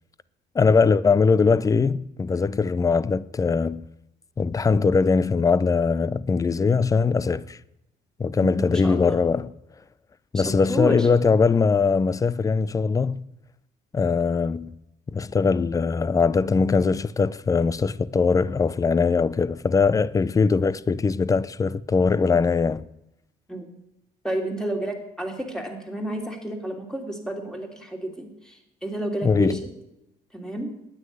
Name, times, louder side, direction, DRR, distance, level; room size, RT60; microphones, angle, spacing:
voice 1, 0.5-3.8 4.4-7.6 8.2-9.5 10.3-13.2 13.9-14.8 15.1-22.8 29.2-29.6, left 4 dB, 20° left, 0.5 m, -21 dB
voice 2, 8.4-9.2 10.3-10.4 10.7-11.1 23.5-23.7 24.2-29.7 30.3-30.7, right 1 dB, 5° left, 2.8 m, -31 dB
9.5 x 9.3 x 9.3 m
cardioid pair, 110°, 17 cm